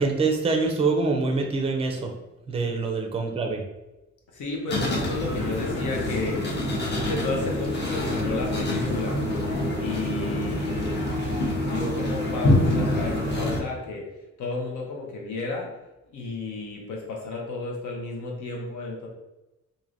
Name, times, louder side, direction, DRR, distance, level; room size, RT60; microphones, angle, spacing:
voice 1, 0.0-2.1 2.5-3.6 10.9-11.5, right 4 dB, 20° right, 3 dB, 0.4 m, -25 dB
voice 2, 4.3-6.5 7.0-9.2 9.8-11.0 11.6-14.1 14.4-15.7 16.1-19.1, left 3 dB, 80° left, 0 dB, 0.8 m, -32 dB
sound 1, 4.7-13.6, left 1 dB, 35° left, 0.7 m, -26 dB
3.0 x 2.6 x 2.5 m, 1.0 s
cardioid pair, 135°, 30 cm